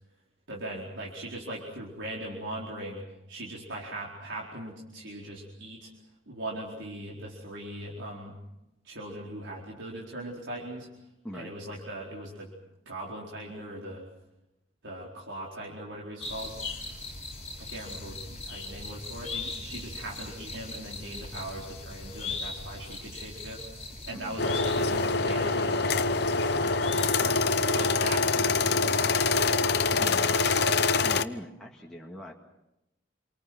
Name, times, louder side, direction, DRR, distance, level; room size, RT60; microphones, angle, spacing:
voice 1, 0.5-5.9 6.3-8.3 8.8-10.9 11.3-12.5 12.8-14.1 14.8-16.6 17.6-29.3, right 1 dB, 75° right, -3 dB, 4.5 m, -40 dB
sound 1, 16.2-27.9 28.1-28.2, left 3 dB, 30° left, 5.4 m, -40 dB
sound 2, 24.4-31.2, left 4 dB, 55° left, 0.9 m, -25 dB
voice 2, 29.9-32.3, equal, 5° left, -3 dB, 2.0 m, -42 dB
28.5 x 24.0 x 6.2 m, 0.90 s
head